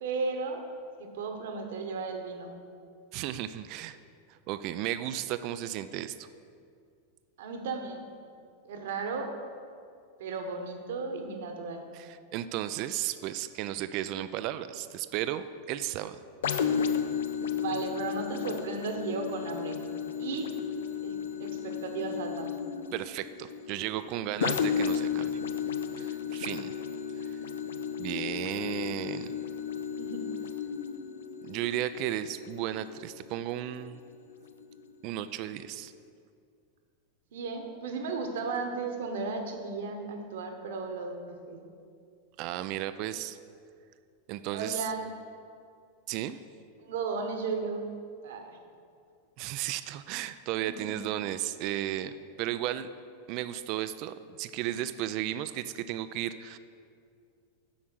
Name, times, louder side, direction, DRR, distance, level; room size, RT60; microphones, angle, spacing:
voice 1, 0.0-0.6 1.0-2.5 7.4-8.1 8.6-9.3 10.2-11.8 17.6-19.8 20.2-20.5 21.0-22.5 28.3-29.0 30.0-30.3 37.3-41.7 44.5-45.1 46.8-47.9 48.2-48.6 50.7-51.0, right 4 dB, 70° right, 5 dB, 1.1 m, -35 dB
voice 2, 3.1-4.0 4.3-6.3 11.9-16.2 22.9-25.3 26.0-26.7 27.3-27.4 28.0-29.3 31.4-34.0 35.0-35.9 42.4-43.4 44.3-44.8 46.1-46.4 49.4-52.1 52.4-52.9 53.3-56.6, right 12 dB, 50° right, 12 dB, 0.4 m, -34 dB
sound 1, 16.4-34.0 34.5-34.6, left 7 dB, 75° left, 0.5 m, -34 dB
7.8 x 6.2 x 6.1 m, 2.3 s
hypercardioid pair, 95°, 0 cm